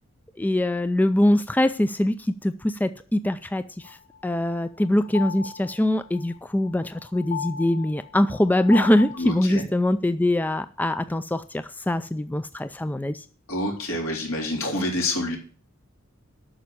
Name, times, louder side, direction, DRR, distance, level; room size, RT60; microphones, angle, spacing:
voice 1, 0.4-2.1 2.4-4.0 4.2-13.2, left 1 dB, 10° left, 11 dB, 0.4 m, -23 dB
sound 1, 3.8-9.2, left 7 dB, 50° left, 2.2 m, -37 dB
voice 2, 9.2-9.6 13.5-15.4, left 1 dB, 80° left, 0 dB, 3.8 m, -27 dB
8.9 x 6.2 x 8.4 m, 0.43 s
head